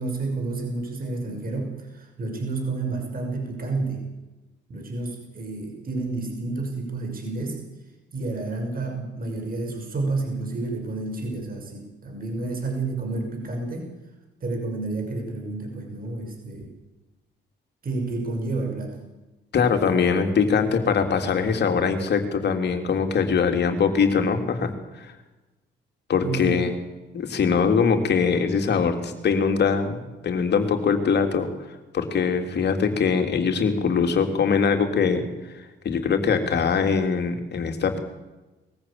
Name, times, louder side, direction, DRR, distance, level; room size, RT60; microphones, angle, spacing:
voice 1, 0.0-4.0 4.7-7.6 8.1-13.9 14.4-16.7 17.8-19.0 26.2-26.7, right 3 dB, 45° right, 2 dB, 6.1 m, -30 dB
voice 2, 19.5-24.7 25.0-25.1 26.1-26.7 27.1-31.5 31.9-35.2 35.5-38.0, left 6 dB, 60° left, 6 dB, 3.4 m, -22 dB
21.5 x 15.0 x 8.9 m, 1.1 s
cardioid pair, 90°, 20 cm